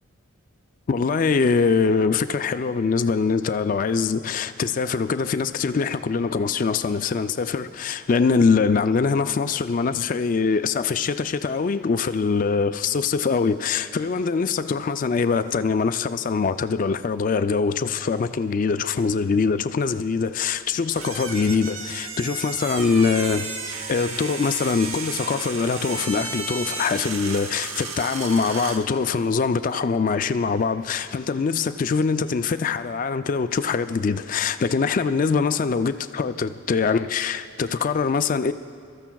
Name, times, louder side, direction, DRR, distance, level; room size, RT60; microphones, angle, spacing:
voice 1, 0.9-23.5 23.9-38.5, left 5 dB, 40° left, 0.3 m, -23 dB
sound 1, 20.9-28.9, right 4 dB, 75° right, 0.9 m, -33 dB
24.0 x 14.0 x 2.3 m
head